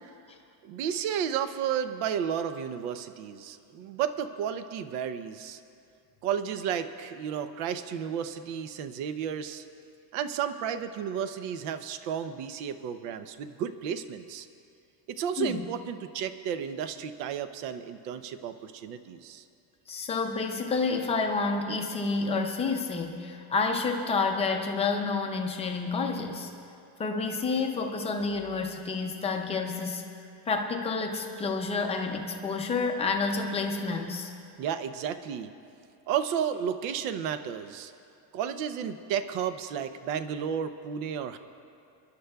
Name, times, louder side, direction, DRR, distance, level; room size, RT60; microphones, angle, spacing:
voice 1, 0.6-5.6 6.2-9.6 10.1-14.5 15.1-19.4 34.6-35.5 36.1-37.9 38.3-41.4, right 8 dB, 80° right, 10 dB, 0.8 m, -32 dB
voice 2, 19.9-26.5 27.0-30.0 30.5-34.3, left 4 dB, 15° left, 2 dB, 0.4 m, -29 dB
28.5 x 11.5 x 2.3 m, 2.5 s
cardioid pair, 180°, 49 cm